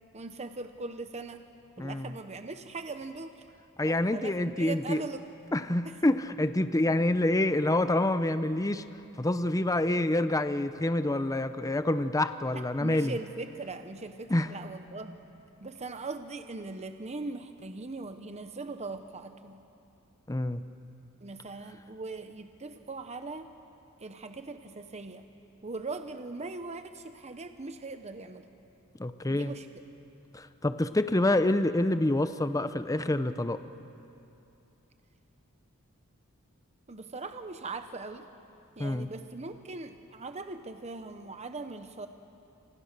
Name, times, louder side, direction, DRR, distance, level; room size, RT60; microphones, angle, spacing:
voice 1, 0.1-1.4 1.8-3.4 3.8-5.2 5.8-5.9 12.5-15.2 15.6-19.6 21.2-23.5 24.0-25.3 25.6-28.5 29.3-29.7 36.9-38.3 38.8-42.1, right 3 dB, 30° right, 8 dB, 0.9 m, -40 dB
voice 2, 1.8-2.1 3.8-5.0 5.5-8.8 9.2-13.1 14.3-14.5 20.3-20.6 29.0-29.5 30.3-33.6 38.8-39.1, left 1 dB, 15° left, 11 dB, 0.7 m, -27 dB
29.0 x 26.5 x 6.7 m, 2.8 s
head